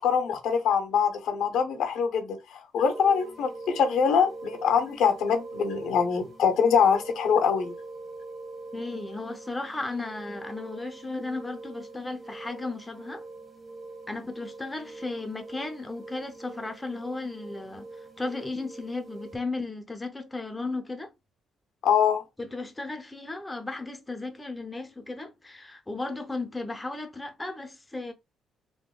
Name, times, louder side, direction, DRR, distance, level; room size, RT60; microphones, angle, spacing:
voice 1, 0.0-7.7 21.8-22.2, left 6 dB, 80° left, 0.6 m, -24 dB
sound 1, 2.8-19.4, right 3 dB, 25° right, 1.1 m, -43 dB
voice 2, 8.7-13.3 14.1-21.1 22.4-28.1, left 3 dB, 15° left, 0.5 m, -35 dB
3.5 x 2.1 x 2.2 m
cardioid pair, 90°, 0 cm